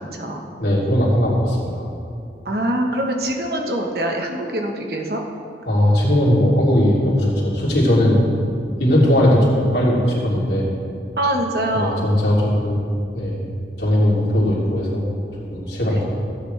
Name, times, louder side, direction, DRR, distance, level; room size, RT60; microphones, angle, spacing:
voice 1, 0.0-0.4 2.4-5.2 11.2-12.1 15.8-16.0, right 1 dB, 60° right, 2 dB, 1.2 m, -24 dB
voice 2, 0.6-1.9 5.7-8.2 8.8-10.7 11.7-12.8 13.1-13.5 13.8-15.1 15.5-16.1, left 1 dB, 70° left, -6 dB, 3.0 m, -18 dB
16.0 x 8.6 x 3.4 m, 2.5 s
head